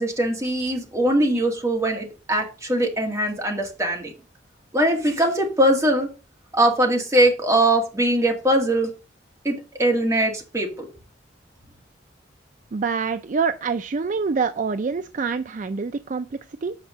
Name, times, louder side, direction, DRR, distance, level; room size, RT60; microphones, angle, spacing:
voice 1, 0.0-4.1 4.7-6.1 6.5-8.9 9.4-10.9, right 1 dB, 15° right, 1 dB, 2.1 m, -21 dB
voice 2, 12.7-16.8, right 5 dB, 40° right, 11 dB, 0.4 m, -26 dB
8.1 x 4.9 x 6.1 m, 0.32 s
head